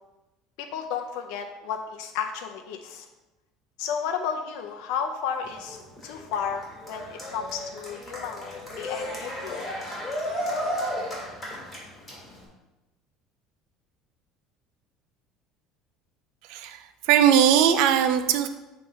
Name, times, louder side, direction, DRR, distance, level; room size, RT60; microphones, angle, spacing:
voice 1, 0.6-3.1 3.8-9.7, left 7 dB, 75° left, 4 dB, 0.5 m, -33 dB
Cheering, 5.4-12.4, equal, 10° left, 2.5 m, -34 dB
voice 2, 16.5-18.5, right 9 dB, 70° right, 8 dB, 0.4 m, -20 dB
7.2 x 3.2 x 5.4 m, 1.0 s
cardioid pair, 140°, 0 cm